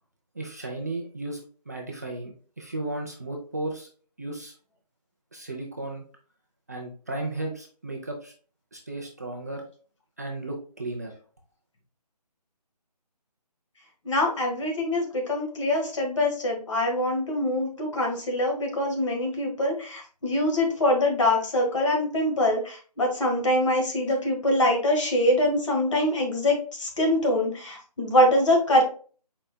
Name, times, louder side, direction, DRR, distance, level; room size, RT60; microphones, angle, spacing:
voice 1, 0.3-1.4 1.7-3.9 4.2-4.5 5.3-6.0 6.7-8.3 8.7-9.6 10.2-11.2, right 2 dB, 25° right, 1 dB, 0.4 m, -34 dB
voice 2, 14.0-28.8, left 1 dB, 50° left, 1 dB, 1.5 m, -24 dB
4.5 x 4.1 x 2.2 m, 0.40 s
figure-of-eight pair, 160°, 21 cm